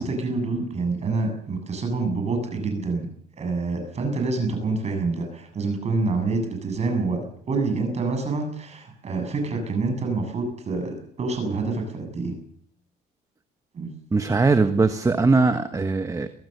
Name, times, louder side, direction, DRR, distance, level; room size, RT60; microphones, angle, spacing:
voice 1, 0.0-3.1 3.4-7.2 7.5-12.3 13.7-13.9, right 3 dB, 40° right, 5 dB, 7.7 m, -27 dB
voice 2, 14.1-16.3, right 3 dB, 20° right, 9 dB, 1.3 m, -20 dB
23.5 x 17.5 x 6.9 m, 0.64 s
cardioid pair, 110°, 17 cm